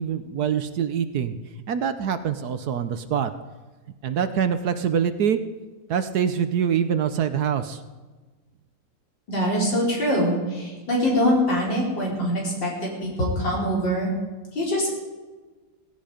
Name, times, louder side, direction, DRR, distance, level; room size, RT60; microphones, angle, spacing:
voice 1, 0.0-1.3 1.7-3.3 4.0-5.4 5.9-7.8, right 8 dB, 65° right, 10 dB, 1.2 m, -24 dB
voice 2, 9.3-14.1 14.5-14.9, equal, 75° left, -3 dB, 5.5 m, -23 dB
17.5 x 16.0 x 5.1 m, 1.3 s
omnidirectional pair, 2.0 m